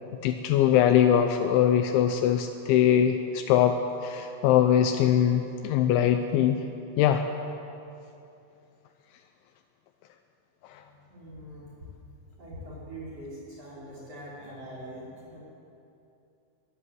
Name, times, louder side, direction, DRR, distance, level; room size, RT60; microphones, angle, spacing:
voice 1, 0.2-6.6 7.0-7.3 10.7-10.8, left 10 dB, 80° left, 6 dB, 3.2 m, -22 dB
voice 2, 10.7-11.9 12.4-15.4, equal, 30° right, -6 dB, 5.6 m, -43 dB
23.0 x 19.5 x 7.9 m, 2.7 s
omnidirectional pair, 5.4 m